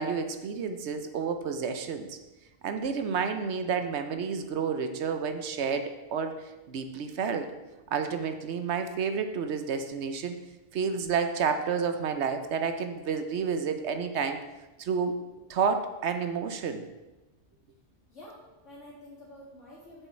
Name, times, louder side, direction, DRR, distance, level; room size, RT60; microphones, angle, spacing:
voice 1, 0.0-2.2 2.6-6.3 6.7-7.5 7.9-10.3 10.7-14.4 14.8-15.2 15.5-16.8, right 6 dB, 70° right, 8 dB, 0.9 m, -30 dB
voice 2, 18.1-20.1, left 1 dB, 75° left, -9 dB, 2.1 m, -49 dB
7.1 x 7.0 x 4.3 m, 1.1 s
omnidirectional pair, 1.2 m